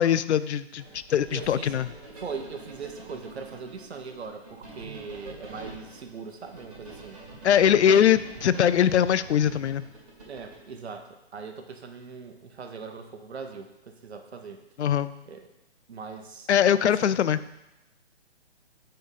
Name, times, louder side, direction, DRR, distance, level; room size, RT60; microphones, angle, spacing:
voice 1, 0.0-1.9 7.4-9.8 14.8-15.1 16.5-17.4, left 9 dB, 80° left, 15 dB, 0.5 m, -22 dB
sound 1, 0.8-10.8, right 2 dB, 35° right, 2.3 m, -45 dB
voice 2, 1.3-1.7 2.2-7.2 7.9-8.1 10.2-14.6 15.3-15.5 15.9-16.5 16.8-17.2, right 5 dB, 70° right, 6 dB, 1.0 m, -40 dB
6.2 x 4.4 x 5.4 m, 0.91 s
hypercardioid pair, 180°, 34 cm